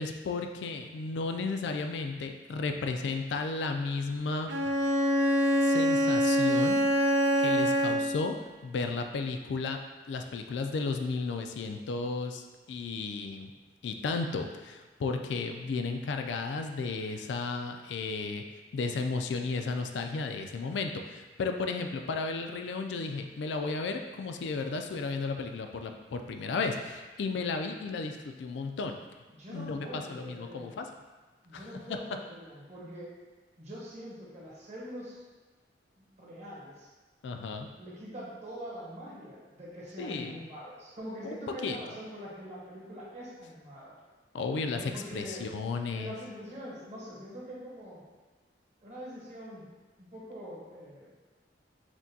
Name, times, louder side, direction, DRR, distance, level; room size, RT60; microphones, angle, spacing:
voice 1, 0.0-4.5 5.6-6.8 7.4-8.4 8.6-9.8 10.1-12.4 12.7-13.5 13.8-18.4 18.7-29.0 29.5-30.9 31.5-31.6 37.2-37.7 40.0-40.4 41.2-41.4 41.6-41.8 44.3-46.1, left 4 dB, 75° left, 5 dB, 0.3 m, -33 dB
Bowed string instrument, 4.5-8.3, equal, 75° right, 0.4 m, -25 dB
voice 2, 29.3-30.8 31.4-33.1 33.6-35.2 36.0-36.9 37.8-44.0 44.7-45.5 45.9-48.0 48.8-49.7 50.0-51.1, equal, 40° right, -7 dB, 1.2 m, -44 dB
5.9 x 2.2 x 2.7 m, 1.3 s
head